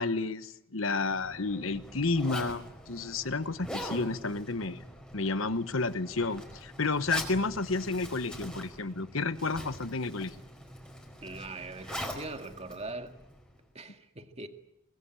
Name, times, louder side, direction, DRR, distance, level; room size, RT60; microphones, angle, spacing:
voice 1, 0.0-4.8 5.1-10.3, left 3 dB, 70° left, 1.2 m, -31 dB
Zipper (clothing), 1.0-13.6, equal, 5° left, 4.5 m, -43 dB
voice 2, 11.2-13.2 13.7-14.5, right 3 dB, 30° right, 2.1 m, -41 dB
24.0 x 22.0 x 8.8 m
head